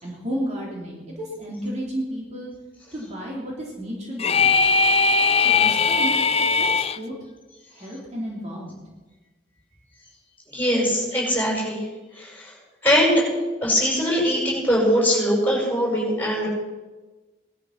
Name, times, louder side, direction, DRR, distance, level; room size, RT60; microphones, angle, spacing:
voice 1, 0.0-2.5 2.9-4.8 5.4-6.1 6.5-7.1 7.7-8.8, equal, 35° right, -4 dB, 3.6 m, -32 dB
sound 1, 4.2-7.0, left 4 dB, 30° left, 0.6 m, -19 dB
voice 2, 10.5-11.8 12.2-12.5 12.8-13.2 13.6-16.5, equal, 10° left, -3 dB, 6.9 m, -21 dB
18.5 x 12.5 x 6.0 m, 1.2 s
head